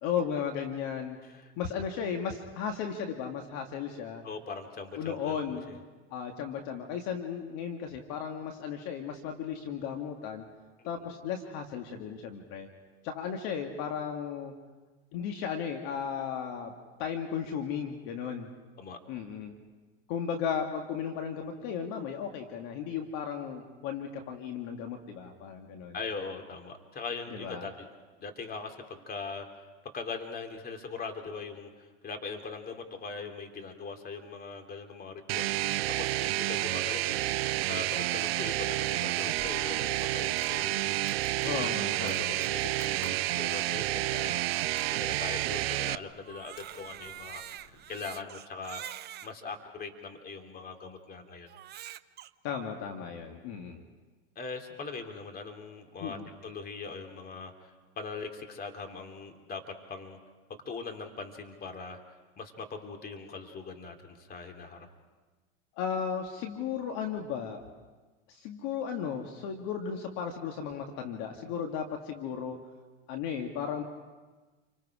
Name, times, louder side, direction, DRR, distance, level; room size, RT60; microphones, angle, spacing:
voice 1, 0.0-1.2 1.6-4.2 5.0-5.7 6.1-10.5 10.9-12.7 13.0-14.5 15.1-16.7 17.0-18.5 19.1-19.6 20.1-26.0 27.3-27.7 41.4-42.4 52.4-53.8 56.0-56.3 65.8-67.6 68.3-72.6 73.1-73.8, left 7 dB, 60° left, 3 dB, 2.1 m, -35 dB
voice 2, 1.2-1.5 4.2-5.8 10.8-11.0 18.8-19.0 25.9-27.9 28.2-37.3 37.6-44.4 44.9-48.8 49.2-51.5 54.3-60.2 60.6-62.0 62.4-64.9, left 4 dB, 30° left, 4 dB, 3.1 m, -41 dB
sound 1, 35.3-46.0, right 16 dB, 75° right, 0.6 m, -30 dB
Crackle, 39.4-48.0, left 2 dB, 85° left, 6.8 m, -55 dB
Crying sobbing, 46.2-49.3 50.0-50.1 51.5-52.3, right 11 dB, 35° right, 0.7 m, -44 dB
29.0 x 25.0 x 5.0 m, 1.3 s
hypercardioid pair, 95°, 31 cm